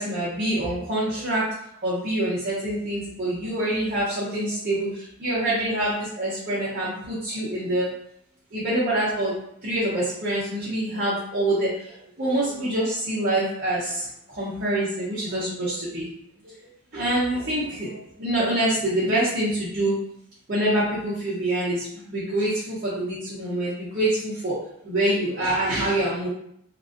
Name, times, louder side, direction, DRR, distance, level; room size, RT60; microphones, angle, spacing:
voice 1, 0.0-1.5 1.8-7.9 8.5-9.3 9.6-16.1 16.4-19.9 20.5-24.6 24.8-26.3, right 1 dB, 40° right, -9 dB, 0.7 m, -26 dB
2.9 x 2.5 x 2.5 m, 0.73 s
head